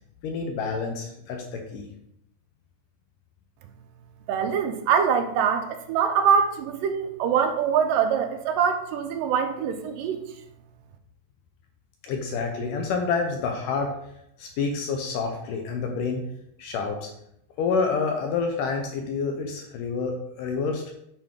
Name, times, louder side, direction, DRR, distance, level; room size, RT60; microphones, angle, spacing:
voice 1, 0.2-1.9 12.0-14.0 14.4-16.2 16.6-17.1 17.6-20.8, left 4 dB, 75° left, 3 dB, 2.2 m, -28 dB
voice 2, 4.3-10.2, right 7 dB, 80° right, 6 dB, 2.3 m, -24 dB
8.7 x 4.8 x 3.7 m, 0.75 s
omnidirectional pair, 4.1 m